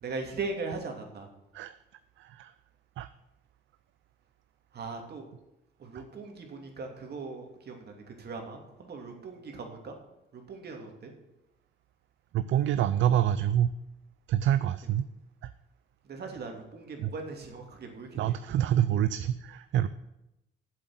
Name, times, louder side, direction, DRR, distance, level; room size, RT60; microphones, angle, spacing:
voice 1, 0.0-1.3 4.7-5.3 5.8-9.9 10.3-11.1 16.0-18.4, right 3 dB, 55° right, 3 dB, 2.8 m, -39 dB
voice 2, 2.2-2.5 3.0-3.1 12.3-13.7 14.3-15.0 15.4-15.5 17.0-17.1 18.2-19.9, right 11 dB, 75° right, 13 dB, 0.5 m, -26 dB
7.9 x 7.7 x 8.2 m, 0.91 s
cardioid pair, 90°, 20 cm